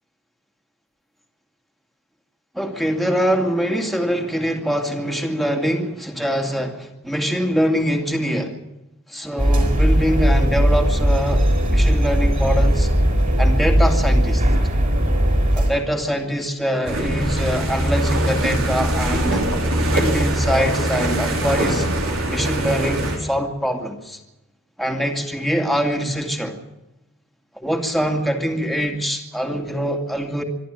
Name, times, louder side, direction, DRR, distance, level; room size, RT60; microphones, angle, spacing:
voice 1, 2.5-8.6 9.1-11.4 11.7-12.9 13.4-14.4 15.5-19.5 19.9-21.9 22.3-24.2 24.8-26.6 27.6-30.4, equal, ahead, 2.4 m, -23 dB
sound 1, 9.4-15.7, equal, 40° right, 6.6 m, -18 dB
sound 2, 16.8-23.2, right 1 dB, 75° right, 5.1 m, -22 dB
25.5 x 12.0 x 9.0 m
head